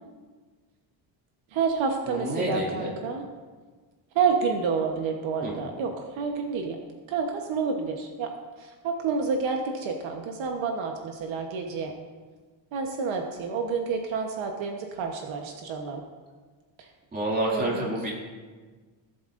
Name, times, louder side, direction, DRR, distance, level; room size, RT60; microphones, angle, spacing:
voice 1, 1.5-3.2 4.1-6.8 7.1-8.3 8.6-11.9 12.7-16.0 17.5-17.9, right 5 dB, 65° right, 3 dB, 1.1 m, -29 dB
voice 2, 2.1-2.9 5.4-5.6 17.1-18.1, right 1 dB, 20° right, -4 dB, 2.3 m, -28 dB
17.5 x 7.8 x 2.5 m, 1.4 s
cardioid pair, 160°, 49 cm